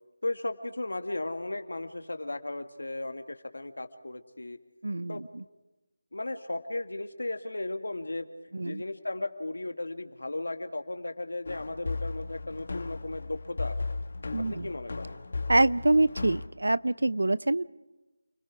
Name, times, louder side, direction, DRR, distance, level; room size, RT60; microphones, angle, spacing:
voice 1, 0.2-4.6 5.1-5.2 6.1-8.3 8.6-14.0 14.5-15.2, left 2 dB, 85° left, 7 dB, 2.1 m, -35 dB
voice 2, 4.8-5.4 8.5-8.8 14.3-14.7 15.5-17.6, right 2 dB, 85° right, 19 dB, 0.7 m, -25 dB
sound 1, 11.5-16.5, left 3 dB, 55° left, 1.7 m, -36 dB
29.0 x 19.0 x 4.8 m, 1.1 s
figure-of-eight pair, 170°, 0 cm